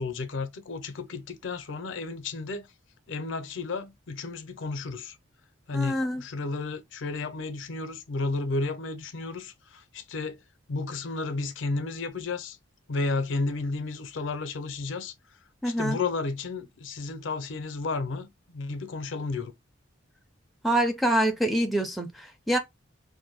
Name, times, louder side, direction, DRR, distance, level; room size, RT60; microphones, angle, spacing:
voice 1, 0.0-2.7 3.1-5.2 5.7-10.4 10.7-12.6 12.9-15.1 15.6-19.5, left 3 dB, 70° left, 0.5 m, -32 dB
voice 2, 5.7-6.2 15.6-16.0 20.6-22.6, right 1 dB, ahead, 0.4 m, -26 dB
2.6 x 2.1 x 3.9 m
head